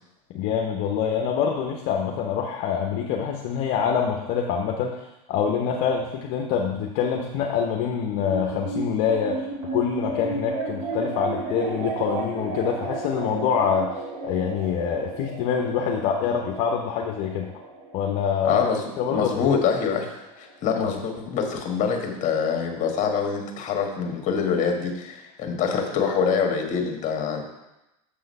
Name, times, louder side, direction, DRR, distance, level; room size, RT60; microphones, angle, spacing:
voice 1, 0.3-5.0 5.3-9.5 9.7-13.9 14.2-17.5 17.9-18.6 19.0-19.5, left 7 dB, 55° left, 1 dB, 0.8 m, -25 dB
sound 1, 8.3-20.9, right 3 dB, 35° right, 2.3 m, -34 dB
voice 2, 18.4-27.4, left 6 dB, 40° left, 3 dB, 1.4 m, -25 dB
6.8 x 3.8 x 5.3 m, 0.94 s
supercardioid pair, 105°, 19 cm